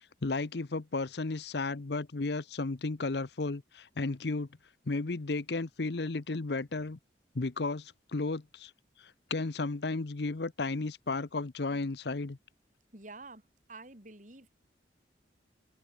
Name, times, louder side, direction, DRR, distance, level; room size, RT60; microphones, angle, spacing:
voice 1, 0.2-4.5 4.9-7.0 7.3-8.7 9.0-12.4, left 3 dB, 65° left, 0.8 m, -34 dB
voice 2, 12.9-13.4 13.7-14.5, right 3 dB, 45° right, 4.1 m, -48 dB
head